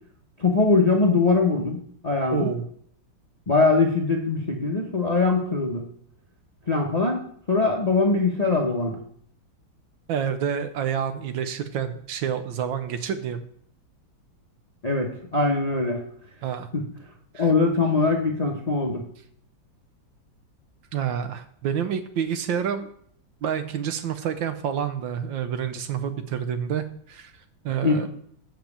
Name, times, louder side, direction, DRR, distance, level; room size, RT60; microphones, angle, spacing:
voice 1, 0.4-2.5 3.5-5.8 6.7-9.0 14.8-16.0 16.7-16.8 17.4-19.0 27.8-28.1, left 3 dB, 35° left, 0 dB, 0.6 m, -22 dB
voice 2, 2.3-2.7 10.1-13.4 16.4-16.7 17.3-17.5 20.9-22.9 23.4-27.3 27.6-28.1, right 8 dB, 70° right, 10 dB, 1.3 m, -28 dB
7.3 x 5.9 x 7.2 m, 0.63 s
omnidirectional pair, 2.3 m